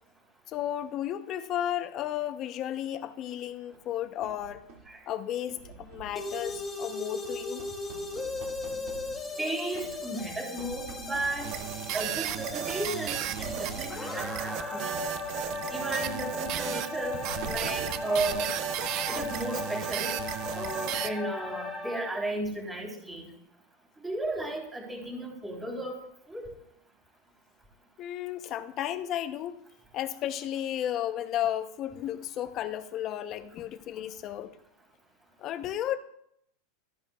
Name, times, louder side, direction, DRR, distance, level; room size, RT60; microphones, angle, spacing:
voice 1, 0.5-4.6 5.1-7.6 28.0-29.6 29.9-34.6 35.4-36.0, left 11 dB, 40° left, 0.8 m, -33 dB
sound 1, 3.7-5.0 5.5-6.8 7.2-9.4 9.7-10.3 10.5-12.5 13.1-14.2 14.9-19.4, right 5 dB, 65° right, 2.4 m, -47 dB
sound 2, 6.2-22.2, left 3 dB, 15° left, 2.5 m, -37 dB
voice 2, 9.4-11.5 11.9-15.0 15.7-17.2 17.5-18.5 19.1-20.1 20.5-23.3 24.0-25.9 26.3-26.4, right 2 dB, 10° right, 3.7 m, -34 dB
sound 3, 11.4-21.1, right 12 dB, 45° right, 0.5 m, -34 dB
13.5 x 10.5 x 2.4 m
supercardioid pair, 130°, 0 cm